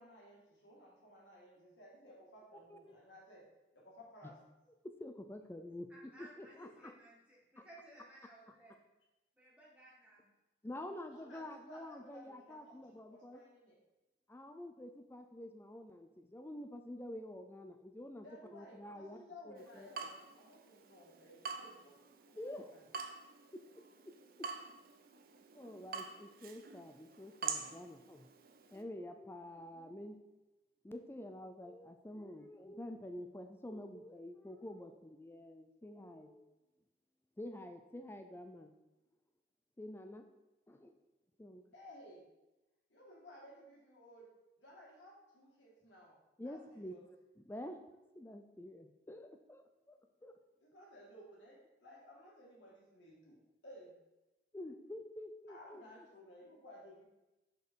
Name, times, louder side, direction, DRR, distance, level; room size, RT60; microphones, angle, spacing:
voice 1, 0.0-3.4 3.7-4.4 11.1-13.8 18.2-22.0 22.3-22.8 41.7-42.2 42.9-44.3 44.6-46.1 46.4-47.0 50.6-53.4 53.6-53.9 55.5-57.0, left 1 dB, 80° left, -3 dB, 2.3 m, -57 dB
voice 2, 4.8-7.0 7.6-7.7 8.5-8.6 10.6-13.4 14.3-18.3 18.5-20.1 22.3-22.7 23.5-24.5 25.5-28.3 28.7-30.2 30.8-36.5 37.4-38.7 39.8-40.3 40.7-40.9 41.4-41.6 46.4-46.9 47.4-47.8 48.1-50.4 54.5-56.1, left 1 dB, 10° left, 6 dB, 0.4 m, -48 dB
voice 3, 5.9-8.8 9.4-10.2, right 1 dB, 5° right, -6 dB, 1.8 m, -58 dB
Water tap faucet / Drip, 19.6-28.8, right 5 dB, 50° right, 0.6 m, -47 dB
6.6 x 5.2 x 4.6 m, 1.0 s
head